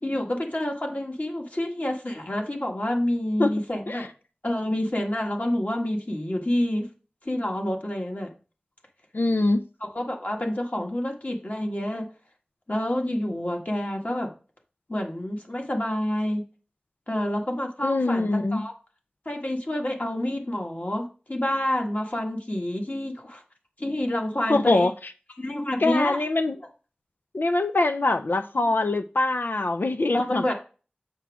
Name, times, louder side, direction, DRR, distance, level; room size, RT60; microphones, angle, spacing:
voice 1, 0.0-4.1 4.4-6.9 7.2-8.3 9.8-12.0 12.7-14.3 14.9-16.4 17.1-18.7 19.2-23.4 23.8-24.9 25.4-26.2 30.1-30.5, left 1 dB, 50° left, 1.6 m, -28 dB
voice 2, 9.1-9.6 17.8-18.6 24.5-24.9 25.8-26.6 27.3-30.5, left 2 dB, 80° left, 0.4 m, -23 dB
7.2 x 6.0 x 3.5 m
wide cardioid pair, 40°, 3 cm